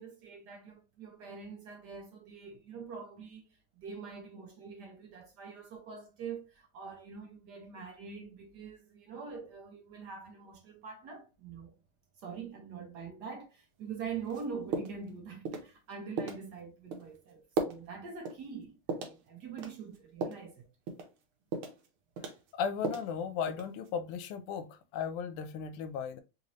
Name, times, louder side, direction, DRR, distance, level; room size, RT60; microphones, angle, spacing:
voice 1, 0.0-3.5 3.8-11.8 12.2-20.7, right 5 dB, 65° right, 1.1 m, -44 dB
sound 1, 14.3-14.4 14.7-15.1 15.4-15.7 16.2-16.4 16.9-17.1 17.6-17.8 18.2-18.4 18.9-19.2 19.6-20.5 20.9-21.1 21.5-21.9 22.2-23.1 23.5-23.9, right 4 dB, 80° right, 1.6 m, -36 dB
voice 2, 22.5-26.2, left 7 dB, 85° left, 1.5 m, -36 dB
3.9 x 2.6 x 2.9 m
omnidirectional pair, 2.4 m